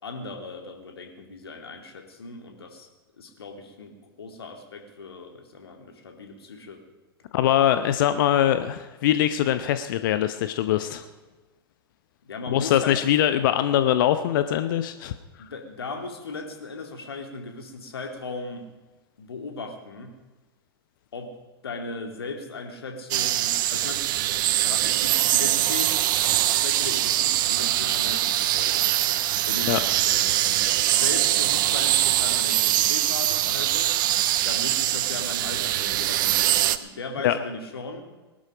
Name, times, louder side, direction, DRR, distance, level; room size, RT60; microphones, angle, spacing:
voice 1, 0.0-2.9 3.2-6.8 12.3-13.0 15.4-18.7 19.2-20.2 21.1-21.3 21.6-24.0 24.6-28.9 29.5-29.9 30.9-33.9 34.4-38.1, left 3 dB, 70° left, 4 dB, 2.5 m, -37 dB
voice 2, 7.3-11.1 12.5-15.1 29.7-29.8 37.2-37.3, left 11 dB, 55° left, 11 dB, 0.8 m, -22 dB
sound 1, 23.1-36.8, right 14 dB, 55° right, 0.8 m, -23 dB
20.0 x 11.5 x 5.1 m, 1.2 s
figure-of-eight pair, 95°, 13 cm